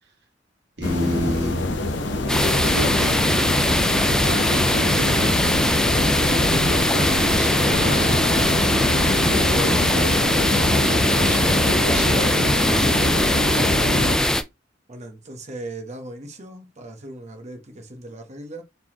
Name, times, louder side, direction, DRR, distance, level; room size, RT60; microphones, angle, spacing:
sound 1, 0.8-14.2, left 2 dB, 70° left, 0.9 m, -25 dB
voice 1, 0.8-1.8 2.6-3.7 4.0-5.4 6.2-8.4 9.1-10.2 10.8-13.2, equal, 65° right, 2.2 m, -30 dB
sound 2, 2.3-14.4, left 1 dB, 5° left, 0.4 m, -21 dB
voice 2, 14.9-18.6, right 2 dB, 40° right, 1.3 m, -38 dB
4.5 x 4.0 x 2.9 m
head